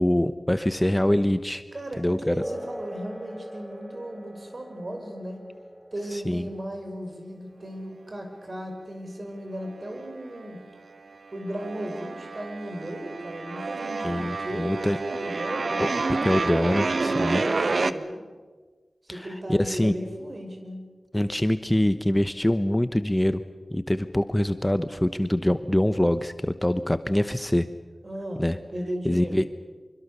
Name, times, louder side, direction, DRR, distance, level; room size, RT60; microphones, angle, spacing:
voice 1, 0.0-1.6 2.0-2.4 6.1-6.5 14.0-15.0 15.8-17.4 19.1-19.9 21.1-23.4 23.7-27.7 28.4-28.6 29.0-29.5, left 1 dB, 15° left, 11 dB, 1.0 m, -24 dB
voice 2, 1.7-5.4 5.9-10.6 11.3-15.9 17.0-18.2 19.0-20.8 28.0-29.5, right 1 dB, 45° right, 4 dB, 5.9 m, -36 dB
sound 1, 2.4-10.4, equal, 10° right, 2.4 m, -42 dB
sound 2, 9.7-10.5 10.7-17.9, right 3 dB, 65° right, 1.0 m, -29 dB
26.0 x 24.5 x 6.9 m, 1.4 s
cardioid pair, 50°, 0 cm